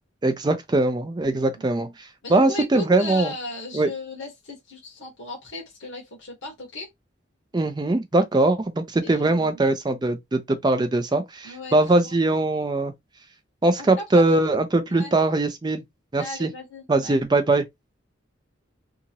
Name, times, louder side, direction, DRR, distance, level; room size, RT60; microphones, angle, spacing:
voice 1, 0.2-3.3 3.7-3.9 7.5-12.9 13.6-15.8 16.1-16.5 16.9-17.6, right 2 dB, 20° right, 0.4 m, -21 dB
voice 2, 1.2-1.7 2.2-6.9 9.0-9.6 11.4-12.2 13.8-14.2 14.9-15.1 16.2-17.2, left 2 dB, 75° left, 1.1 m, -37 dB
2.8 x 2.5 x 2.8 m
head